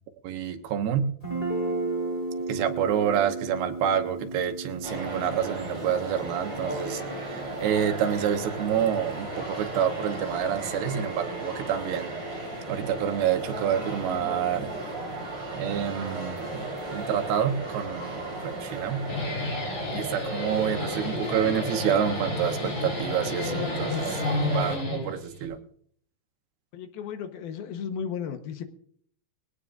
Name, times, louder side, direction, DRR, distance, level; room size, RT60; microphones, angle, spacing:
voice 1, 0.2-1.1 2.5-12.1 12.7-14.7 15.5-19.1 19.9-25.6, right 9 dB, 85° right, 6 dB, 3.1 m, -28 dB
Guitar, 1.2-8.9, right 3 dB, 20° left, 2.0 m, -35 dB
sound 1, 4.8-24.8, right 2 dB, 25° right, 5.6 m, -35 dB
Guitar 2, 18.9-25.5, left 3 dB, 55° left, 5.4 m, -32 dB
voice 2, 26.7-28.6, left 7 dB, 75° left, 7 dB, 2.9 m, -34 dB
21.5 x 17.0 x 2.6 m, 0.62 s
omnidirectional pair, 4.4 m